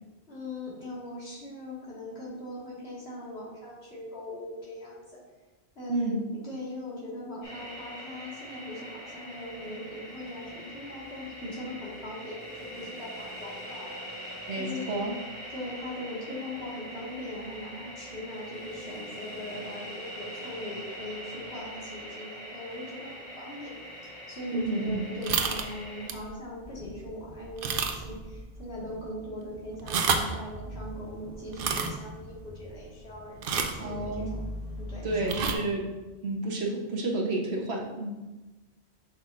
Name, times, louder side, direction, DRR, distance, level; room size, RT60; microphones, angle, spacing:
voice 1, 0.3-5.0 5.8-6.2 6.4-14.9 15.5-23.7 24.0-34.5 34.8-35.6, left 1 dB, 75° left, -7 dB, 2.1 m, -40 dB
voice 2, 5.9-6.2 14.5-15.1 24.5-25.0 33.8-34.4 35.0-35.8 36.2-38.1, right 2 dB, 85° right, -1 dB, 1.2 m, -30 dB
sound 1, 7.4-26.1, equal, 60° left, 1.9 m, -43 dB
sound 2, 25.2-25.7 26.1-26.3 26.7-26.8 27.6-28.2 28.5-28.6 29.7-30.4 31.5-31.9 33.4-33.8 35.2-35.5, right 5 dB, 60° right, 0.7 m, -28 dB
sound 3, 26.6-35.6, left 1 dB, 15° right, 1.1 m, -43 dB
7.4 x 5.9 x 2.5 m, 1.1 s
omnidirectional pair, 1.1 m